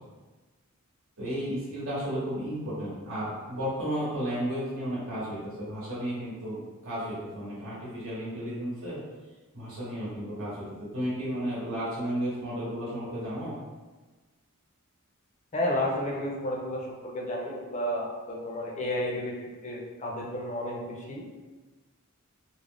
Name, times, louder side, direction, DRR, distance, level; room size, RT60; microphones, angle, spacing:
voice 1, 1.2-9.0 9.5-13.5, equal, 70° right, -8 dB, 0.9 m, -33 dB
voice 2, 15.5-21.3, left 1 dB, 35° left, -2 dB, 0.5 m, -32 dB
2.4 x 2.0 x 3.3 m, 1.2 s
head